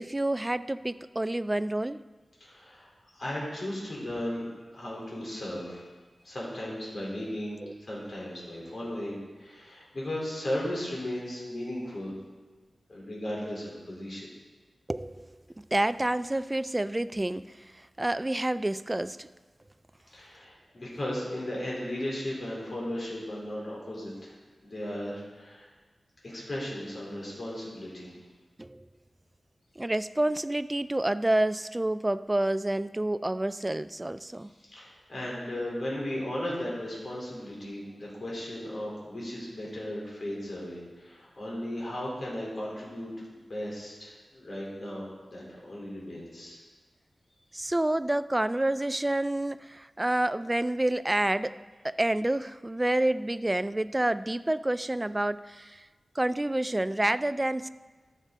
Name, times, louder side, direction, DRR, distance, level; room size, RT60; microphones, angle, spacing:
voice 1, 0.0-2.0 7.6-7.7 14.9-19.3 28.6-28.9 29.8-34.5 47.5-51.6 51.8-55.9 56.2-57.7, right 1 dB, 20° right, 14 dB, 0.3 m, -28 dB
voice 2, 2.4-5.9 6.2-12.1 12.9-14.3 20.1-24.3 24.6-25.7 26.2-28.1 34.6-43.1 43.5-46.6, left 1 dB, 55° left, -5 dB, 3.4 m, -36 dB
13.0 x 6.7 x 3.7 m, 1.3 s
wide cardioid pair, 75°, 0 cm